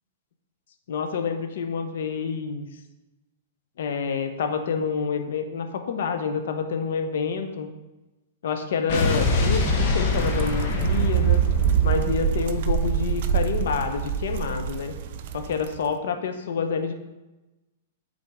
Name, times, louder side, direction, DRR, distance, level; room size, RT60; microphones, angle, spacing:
voice 1, 0.9-2.7 3.8-7.7 8.4-11.4 11.8-14.9 15.3-16.9, left 6 dB, 70° left, 7 dB, 0.7 m, -28 dB
Explosion, 8.9-13.2, left 2 dB, 55° left, 1.1 m, -25 dB
sound 1, 10.1-15.7, right 9 dB, 55° right, 0.4 m, -25 dB
8.5 x 3.9 x 3.6 m, 1.0 s
hypercardioid pair, 125°, 0 cm